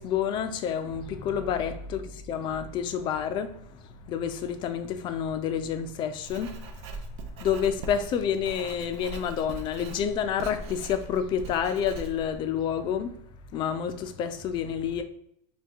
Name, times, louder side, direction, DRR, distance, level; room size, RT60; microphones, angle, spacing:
voice 1, 0.0-7.0 7.4-13.2 13.5-15.0, left 8 dB, 25° left, 0.3 m, -29 dB
Writing, 6.2-12.4, right 3 dB, 55° right, 0.6 m, -41 dB
3.4 x 2.3 x 4.3 m
supercardioid pair, 150°, 18 cm